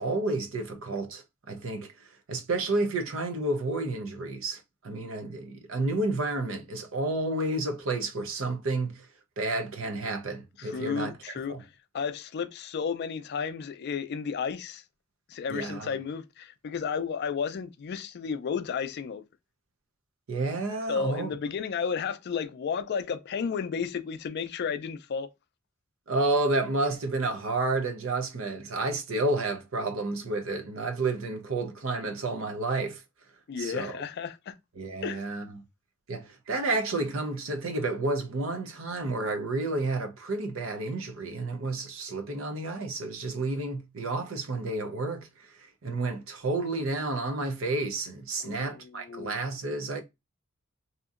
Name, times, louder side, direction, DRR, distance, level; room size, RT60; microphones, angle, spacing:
voice 1, 0.0-1.9 2.3-9.1 9.4-11.1 11.5-11.6 15.5-15.9 20.3-21.3 26.1-33.0 33.6-34.0 34.8-35.6 36.1-45.3 45.8-50.0, right 2 dB, 70° right, 0.6 m, -30 dB
voice 2, 10.6-11.6 11.9-14.8 15.3-19.2 20.9-25.3 33.5-34.5 35.0-35.2 48.4-49.4, left 6 dB, 50° left, 0.3 m, -33 dB
2.8 x 2.6 x 2.4 m
head